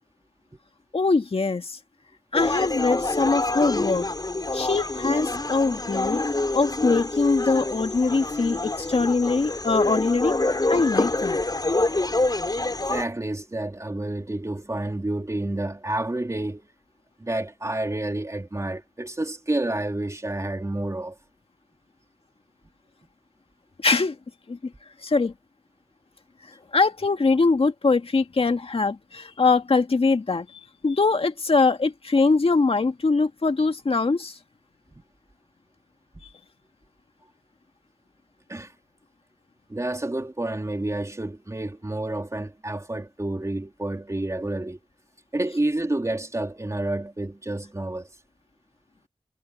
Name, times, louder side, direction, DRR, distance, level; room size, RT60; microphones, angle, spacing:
voice 1, 0.9-1.8 2.3-4.1 4.5-6.2 6.5-10.4 10.7-11.4 23.8-24.2 24.5-24.7 25.0-25.3 26.7-30.5 30.8-34.4, left 4 dB, 65° left, 1.9 m, -22 dB
sound 1, 2.3-13.0, left 2 dB, 40° left, 4.2 m, -26 dB
voice 2, 12.9-16.7 17.2-21.2 34.9-35.0 38.5-38.7 39.7-44.8 45.3-48.1, right 2 dB, 30° right, 3.0 m, -29 dB
cardioid pair, 50°, 11 cm